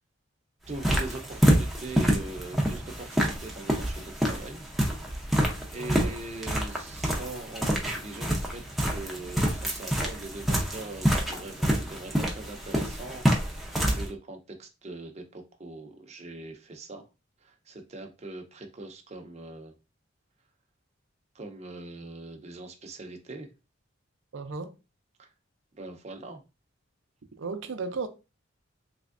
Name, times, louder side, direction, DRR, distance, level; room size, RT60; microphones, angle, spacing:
sound 1, 0.7-14.1, equal, ahead, 0.6 m, -27 dB
voice 1, 0.7-4.7 5.7-17.0 17.4-19.8 21.3-23.5 25.2-25.3 25.7-26.4, right 2 dB, 35° right, 0.6 m, -41 dB
voice 2, 5.8-6.1 24.3-24.7 27.4-28.1, right 4 dB, 75° right, 0.5 m, -34 dB
3.4 x 3.0 x 2.5 m
head